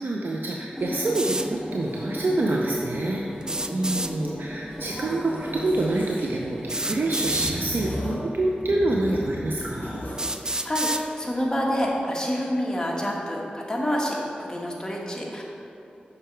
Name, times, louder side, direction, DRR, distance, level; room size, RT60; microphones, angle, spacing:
voice 1, 0.0-10.0, right 2 dB, 70° right, -1 dB, 0.6 m, -27 dB
sound 1, 0.7-7.4, equal, ahead, 1.8 m, -35 dB
sound 2, 1.1-1.5 3.4-4.1 5.6-5.7 6.7-7.6 8.6-8.7 9.3-9.4 10.2-11.0, right 1 dB, 20° right, 0.4 m, -28 dB
sound 3, 4.8-6.3 7.2-8.3 8.6-10.3, equal, 50° left, 1.8 m, -35 dB
voice 2, 10.5-15.4, equal, 20° left, -2 dB, 1.5 m, -27 dB
6.7 x 5.8 x 4.5 m, 2.7 s
cardioid pair, 50°, 3 cm